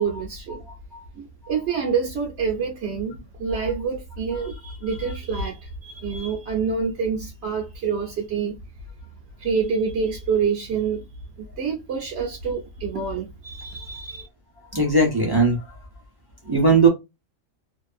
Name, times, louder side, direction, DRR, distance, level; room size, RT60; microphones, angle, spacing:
voice 1, 0.0-0.6 1.2-8.6 9.4-11.1 11.4-14.3, right 5 dB, 55° right, 0.9 m, -27 dB
voice 2, 0.7-1.0 14.7-15.6 16.5-16.9, right 3 dB, 30° right, 0.4 m, -19 dB
2.6 x 2.3 x 2.4 m
omnidirectional pair, 1.5 m